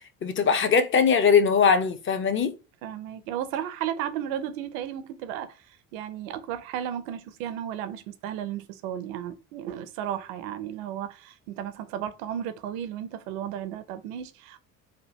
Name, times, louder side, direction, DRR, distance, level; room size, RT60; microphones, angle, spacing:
voice 1, 0.2-2.5, left 6 dB, 30° left, 0.6 m, -21 dB
voice 2, 2.8-5.6 5.9-14.6, right 10 dB, 80° right, 0.6 m, -34 dB
3.4 x 2.4 x 2.8 m
hypercardioid pair, 70°, 42 cm